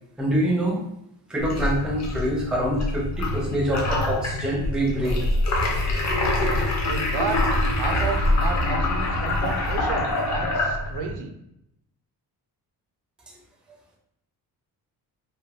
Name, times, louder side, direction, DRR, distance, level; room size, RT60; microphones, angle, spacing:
voice 1, 0.2-0.8 1.3-5.2, right 1 dB, ahead, -1 dB, 0.4 m, -25 dB
sound 1, 1.4-11.1, left 1 dB, 45° left, 0.6 m, -25 dB
voice 2, 6.8-7.4 7.7-11.4, right 5 dB, 80° right, 4 dB, 0.5 m, -32 dB
3.4 x 2.6 x 2.3 m, 0.79 s
cardioid pair, 145°, 39 cm